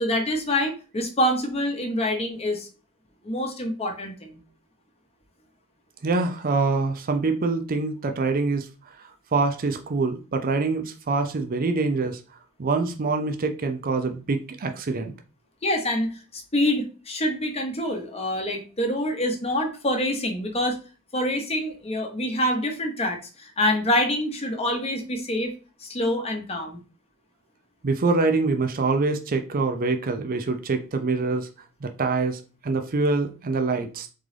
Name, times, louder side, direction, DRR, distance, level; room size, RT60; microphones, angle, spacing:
voice 1, 0.0-2.7 3.2-4.4 15.6-20.8 21.1-25.5 25.8-26.8, left 1 dB, 30° left, 0.9 m, -26 dB
voice 2, 6.0-12.2 12.6-15.1 27.8-31.5 31.8-34.1, right 3 dB, 40° right, 0.5 m, -25 dB
3.8 x 3.7 x 3.3 m
head